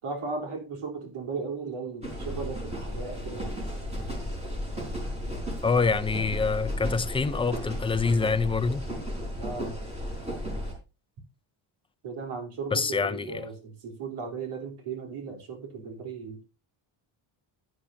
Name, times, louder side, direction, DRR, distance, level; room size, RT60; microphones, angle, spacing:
voice 1, 0.0-3.5 9.4-9.8 12.0-16.4, right 4 dB, 80° right, 4.0 m, -36 dB
sound 1, 2.0-10.7, equal, 15° right, 4.5 m, -34 dB
voice 2, 5.6-8.8 12.7-13.5, left 4 dB, 10° left, 0.5 m, -26 dB
10.5 x 10.0 x 2.8 m
cardioid pair, 150°, 50 cm